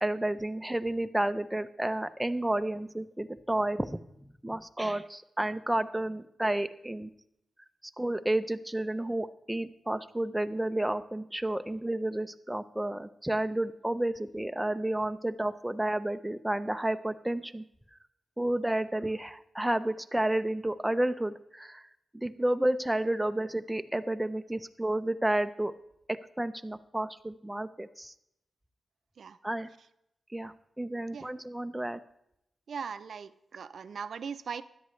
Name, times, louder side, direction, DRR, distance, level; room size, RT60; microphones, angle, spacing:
voice 1, 0.0-7.1 8.0-17.6 18.4-21.9 22.1-25.7 26.1-28.1 29.4-29.7 30.3-32.0, right 1 dB, 10° right, 10 dB, 0.6 m, -31 dB
voice 2, 32.7-34.6, right 6 dB, 70° right, 12 dB, 0.5 m, -39 dB
16.0 x 11.0 x 3.2 m, 0.78 s
wide cardioid pair, 95°, 0 cm